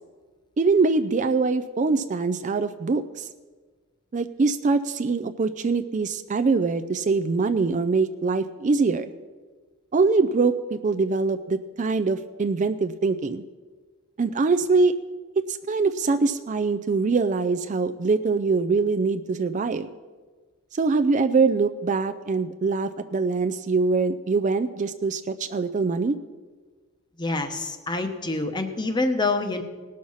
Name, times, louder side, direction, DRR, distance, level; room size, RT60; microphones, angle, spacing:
voice 1, 0.6-3.3 4.1-9.1 9.9-13.4 14.2-14.9 15.5-19.9 20.7-26.2, right 4 dB, 35° right, 10 dB, 0.4 m, -23 dB
voice 2, 27.2-29.6, left 2 dB, 20° left, 6 dB, 0.8 m, -26 dB
18.5 x 6.4 x 5.5 m, 1.4 s
head